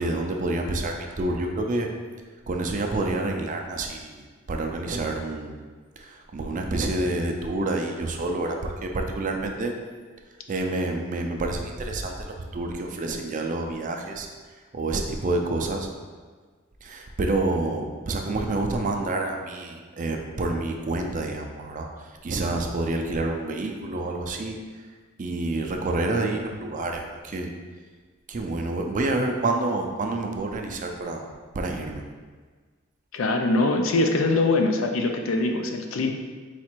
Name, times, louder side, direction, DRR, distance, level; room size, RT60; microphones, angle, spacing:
voice 1, 0.0-1.9 2.5-5.5 6.0-9.7 10.5-14.3 14.7-15.9 16.8-24.6 25.2-27.5 28.3-31.3 31.5-32.0, right 2 dB, 40° right, 3 dB, 0.4 m, -28 dB
voice 2, 33.1-36.1, left 2 dB, 70° left, 4 dB, 0.5 m, -23 dB
4.2 x 2.4 x 4.4 m, 1.5 s
head